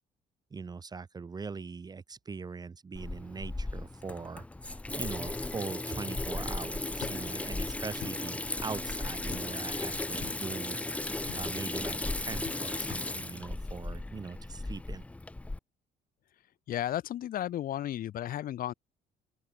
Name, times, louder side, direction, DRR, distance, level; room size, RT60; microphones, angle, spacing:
voice 1, 0.5-4.4 4.9-15.0, right 5 dB, 25° right, 0.9 m, -41 dB
Water tap faucet / Sink (filling or washing), 3.0-15.6, left 2 dB, 10° left, 0.4 m, -36 dB
sound 1, 7.0-7.2 8.0-8.2 9.3-9.5 10.2-10.4 11.3-11.4 12.4-12.6 12.9-13.1, left 18 dB, 85° left, 1.4 m, -43 dB
voice 2, 16.7-18.7, left 12 dB, 60° left, 1.3 m, -33 dB
open air
cardioid pair, 110°, 17 cm